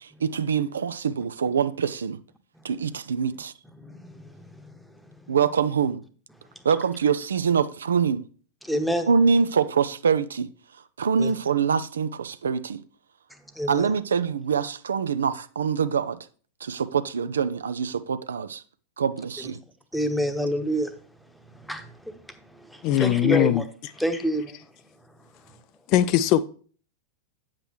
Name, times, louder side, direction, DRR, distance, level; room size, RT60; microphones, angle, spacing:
voice 1, 0.0-2.2 2.6-3.5 5.3-6.0 6.6-8.2 9.1-10.5 11.0-12.8 13.7-16.2 16.6-18.6 19.0-19.6, right 6 dB, 70° right, 0.4 m, -24 dB
voice 2, 3.8-4.9 8.6-9.1 11.2-11.3 13.5-13.9 19.9-20.9 21.5-22.2 22.5-23.6 24.0-24.6, equal, ahead, 1.0 m, -28 dB
voice 3, 22.8-23.6 25.9-26.4, left 12 dB, 40° left, 0.4 m, -20 dB
8.9 x 7.5 x 3.1 m
figure-of-eight pair, 90°, 0 cm